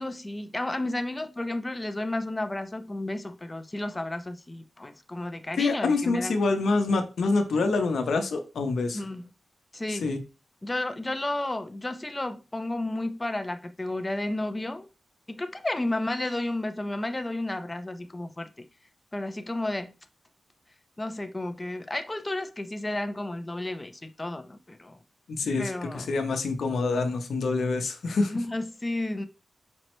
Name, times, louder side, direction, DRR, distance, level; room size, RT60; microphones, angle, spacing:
voice 1, 0.0-6.4 8.9-9.3 9.7-10.1 10.6-14.9 15.3-18.6 19.1-19.9 21.0-25.0 25.6-26.1 28.0-29.2, left 1 dB, 20° left, 0.4 m, -32 dB
voice 2, 5.6-9.0 9.9-10.2 25.4-28.3, left 3 dB, 85° left, 0.7 m, -26 dB
5.2 x 2.1 x 3.0 m
wide cardioid pair, 110°, 0 cm